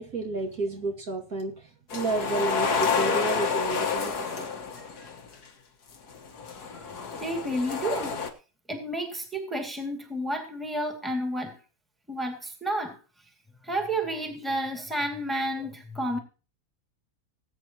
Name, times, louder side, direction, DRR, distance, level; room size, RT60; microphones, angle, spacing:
voice 1, 0.0-4.5, right 2 dB, 65° right, 0 dB, 2.7 m, -31 dB
sound 1, 1.9-5.2 6.1-8.3, left 5 dB, 75° left, 2.1 m, -29 dB
voice 2, 4.8-5.1 6.6-6.9 7.2-8.2 8.7-11.6 12.1-13.0 13.6-16.2, right 1 dB, ahead, 3 dB, 2.3 m, -31 dB
19.5 x 8.9 x 3.0 m, 0.34 s
omnidirectional pair, 1.7 m